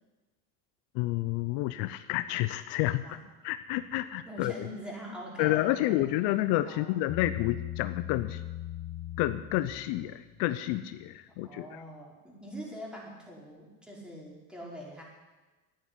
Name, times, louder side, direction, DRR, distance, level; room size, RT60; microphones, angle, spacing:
voice 1, 0.9-3.2 3.4-4.5 5.4-8.4 9.2-11.6, left 15 dB, 65° left, 12 dB, 0.7 m, -29 dB
voice 2, 4.2-6.1 6.6-7.2 11.3-15.0, equal, ahead, -3 dB, 5.1 m, -44 dB
Bass guitar, 7.1-10.5, left 13 dB, 45° left, 1.6 m, -39 dB
10.5 x 10.0 x 9.8 m, 1.2 s
supercardioid pair, 100°, 44 cm